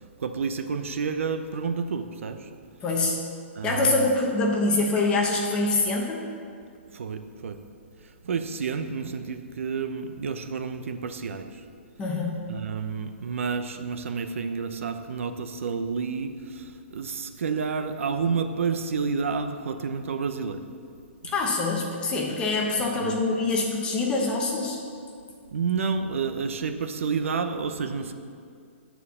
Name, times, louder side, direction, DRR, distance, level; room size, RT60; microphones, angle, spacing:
voice 1, 0.0-2.5 3.5-4.1 6.9-7.6 8.0-11.6 12.5-20.7 21.2-21.3 22.9-23.2 25.5-28.1, right 5 dB, 75° right, 8 dB, 0.7 m, -30 dB
voice 2, 2.8-3.2 3.6-6.2 12.0-12.4 21.2-24.8, left 3 dB, 15° left, -1 dB, 1.0 m, -25 dB
8.8 x 4.6 x 7.1 m, 2.3 s
hypercardioid pair, 165°, 7 cm